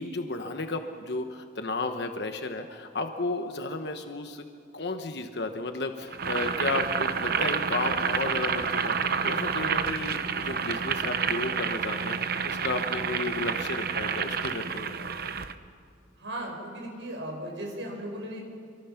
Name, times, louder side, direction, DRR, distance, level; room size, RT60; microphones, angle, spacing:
voice 1, 0.0-4.4 4.7-15.2, left 2 dB, 65° left, 6 dB, 1.1 m, -33 dB
Boiling, 6.1-15.5, right 6 dB, 55° right, 0.9 m, -29 dB
voice 2, 16.2-18.4, right 1 dB, 90° right, 0 dB, 6.0 m, -36 dB
27.5 x 24.0 x 5.9 m, 2.3 s
head